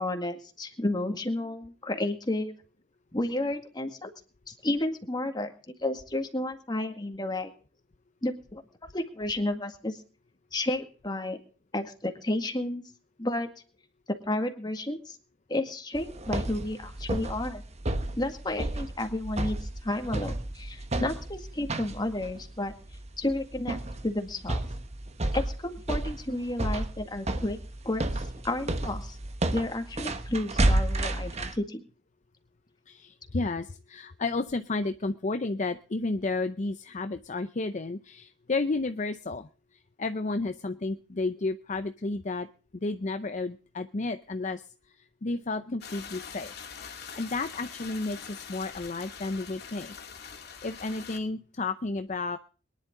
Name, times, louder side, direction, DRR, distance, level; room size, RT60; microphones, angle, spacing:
voice 1, 0.0-2.5 3.1-4.1 4.5-5.5 5.8-7.5 8.2-8.6 8.9-10.0 10.5-11.4 11.7-12.8 13.2-13.5 14.1-15.2 15.5-17.6 18.2-22.7 23.2-24.6 25.3-27.6 27.8-28.1 28.4-29.2 29.5-31.8, left 1 dB, 25° left, 6 dB, 1.9 m, -31 dB
sound 1, 15.9-31.6, right 1 dB, 35° right, 1.2 m, -31 dB
voice 2, 32.9-42.5 42.7-44.9 45.2-46.5 46.8-49.9 50.6-52.4, left 3 dB, 40° left, 10 dB, 0.6 m, -32 dB
sound 2, 45.8-51.2, left 7 dB, 60° left, 2.4 m, -44 dB
22.5 x 11.0 x 3.7 m, 0.38 s
head